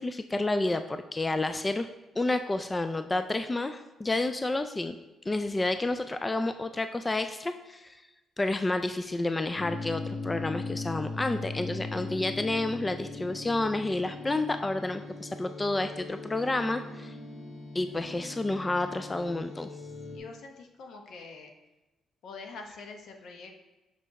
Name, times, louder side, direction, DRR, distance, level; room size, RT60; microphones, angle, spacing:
voice 1, 0.0-1.9 2.2-5.0 5.3-8.0 8.4-17.2 17.7-19.7, left 2 dB, 20° left, 9 dB, 0.4 m, -30 dB
sound 1, 9.5-20.2, left 3 dB, 55° left, 1.8 m, -39 dB
voice 2, 20.1-21.5 22.2-23.5, left 4 dB, 70° left, 4 dB, 1.0 m, -45 dB
6.2 x 5.5 x 4.1 m, 1.1 s
cardioid pair, 90°, 0 cm